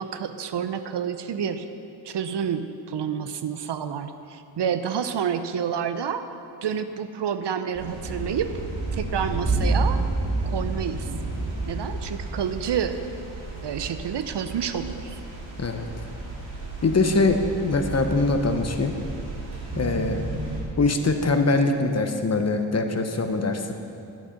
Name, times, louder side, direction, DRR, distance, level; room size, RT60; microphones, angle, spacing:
voice 1, 0.0-1.7 2.0-6.3 6.6-8.5 8.9-10.0 10.4-11.1 11.7-13.0 13.6-15.2, right 8 dB, 60° right, 10 dB, 0.6 m, -29 dB
sound 1, 7.7-20.6, right 2 dB, 80° right, 2.4 m, -31 dB
voice 2, 16.8-18.9 19.8-20.2 20.8-23.7, left 3 dB, 35° left, 6 dB, 0.7 m, -23 dB
11.0 x 7.8 x 5.1 m, 2.6 s
wide cardioid pair, 120°, 47 cm